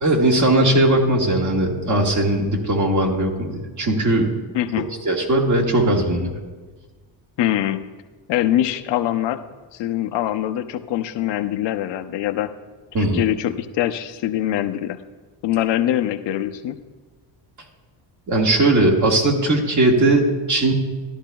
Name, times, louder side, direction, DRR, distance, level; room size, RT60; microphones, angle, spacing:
voice 1, 0.0-4.3 5.1-6.3 12.9-13.2 18.3-20.7, right 1 dB, 40° right, 1 dB, 1.6 m, -18 dB
voice 2, 4.5-4.9 7.4-7.8 8.3-9.4 9.7-12.5 13.0-15.0 15.4-16.8, left 12 dB, 65° left, 9 dB, 0.7 m, -23 dB
13.5 x 11.5 x 2.3 m, 1.3 s
cardioid pair, 115°, 45 cm